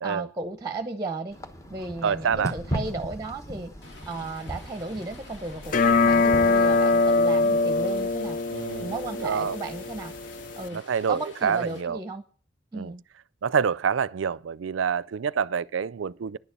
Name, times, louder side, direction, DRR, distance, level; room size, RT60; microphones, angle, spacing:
voice 1, 0.0-1.4 1.7-8.4 8.8-10.1 10.6-10.8 11.1-12.2 12.7-13.0, right 3 dB, 15° right, 0.8 m, -35 dB
sound 1, 1.3-6.8, equal, 15° left, 1.0 m, -37 dB
voice 2, 2.0-2.5 8.5-8.9 9.2-9.5 10.7-12.0 12.7-12.9 13.4-16.4, right 6 dB, 85° right, 0.4 m, -27 dB
Rain, 3.8-11.8, left 2 dB, 70° left, 3.2 m, -49 dB
sound 2, 5.7-10.7, left 3 dB, 45° left, 0.4 m, -23 dB
11.0 x 7.1 x 6.8 m
head